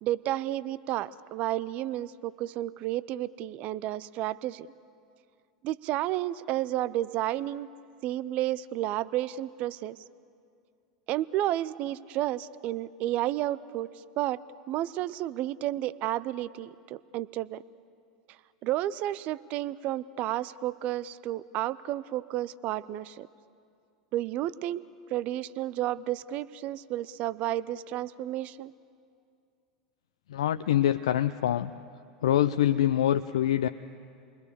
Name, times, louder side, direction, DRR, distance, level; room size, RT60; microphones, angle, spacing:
voice 1, 0.0-4.7 5.6-7.7 8.0-10.0 11.1-13.9 14.2-14.4 14.7-17.6 18.6-23.3 24.1-24.8 25.1-28.7, right 14 dB, 50° right, 17 dB, 0.6 m, -31 dB
voice 2, 30.3-31.7 32.2-33.7, left 11 dB, 75° left, 9 dB, 0.5 m, -25 dB
28.5 x 21.0 x 6.9 m, 2.4 s
hypercardioid pair, 90°, 3 cm